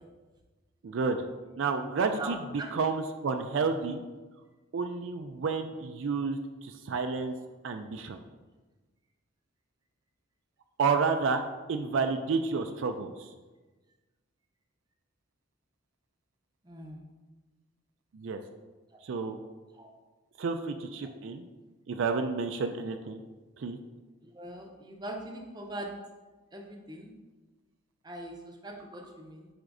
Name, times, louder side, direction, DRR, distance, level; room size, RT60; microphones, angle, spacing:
voice 1, 0.8-1.3 1.5-2.4 2.7-4.0 4.7-7.3 7.6-8.2 10.8-11.4 11.7-13.3 18.1-18.4 19.0-19.4 20.4-21.4 21.9-23.2 23.6-23.8, right 4 dB, 65° right, 6 dB, 0.4 m, -30 dB
voice 2, 2.2-2.7 16.6-17.1 19.7-19.9 24.2-25.9 26.5-27.1 28.0-29.5, right 1 dB, 20° right, 1 dB, 0.6 m, -41 dB
9.5 x 4.3 x 2.6 m, 1.3 s
head